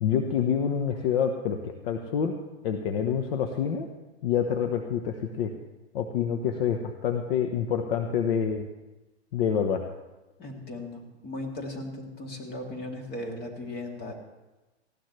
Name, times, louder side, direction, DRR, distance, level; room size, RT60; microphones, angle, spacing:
voice 1, 0.0-2.3 2.6-3.9 4.2-5.5 5.9-8.7 9.3-9.8, left 7 dB, 60° left, 5 dB, 1.2 m, -27 dB
voice 2, 10.4-14.1, left 1 dB, 30° left, 1 dB, 3.1 m, -37 dB
19.0 x 15.5 x 3.3 m, 1.1 s
hypercardioid pair, 110°, 34 cm